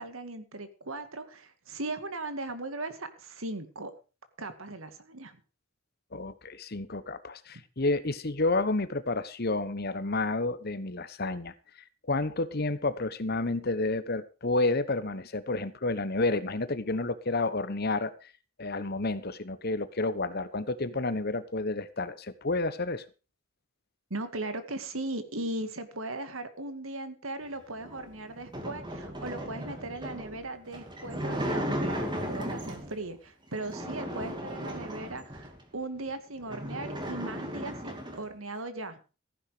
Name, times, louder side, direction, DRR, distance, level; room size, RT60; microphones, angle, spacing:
voice 1, 0.0-3.9 4.4-5.4 24.1-39.0, right 2 dB, 75° right, 10 dB, 2.2 m, -38 dB
voice 2, 6.1-11.5 12.1-18.3 18.6-23.0, left 2 dB, 50° left, 14 dB, 1.1 m, -30 dB
sound 1, 27.8-33.0 33.5-35.6 36.1-36.2 36.4-38.3, equal, 20° right, 2.7 m, -36 dB
15.0 x 10.5 x 5.1 m, 0.33 s
head